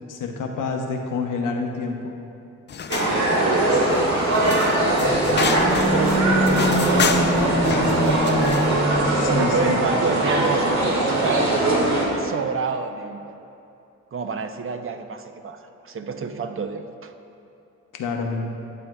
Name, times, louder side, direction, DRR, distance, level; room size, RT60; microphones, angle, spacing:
voice 1, 0.1-2.2 9.1-9.8 17.9-18.5, left 4 dB, 80° left, 2 dB, 0.8 m, -28 dB
sound 1, 2.7-8.8, left 6 dB, 35° left, 0.4 m, -30 dB
sound 2, 2.9-12.1, right 2 dB, 65° right, 1.6 m, -21 dB
sound 3, 4.8-9.6, equal, 5° right, 1.7 m, -24 dB
voice 2, 5.6-7.3 9.2-11.6 12.2-13.4 14.1-17.1, right 5 dB, 45° right, 7 dB, 0.5 m, -29 dB
12.0 x 7.3 x 2.2 m, 2.7 s
cardioid pair, 70°, 31 cm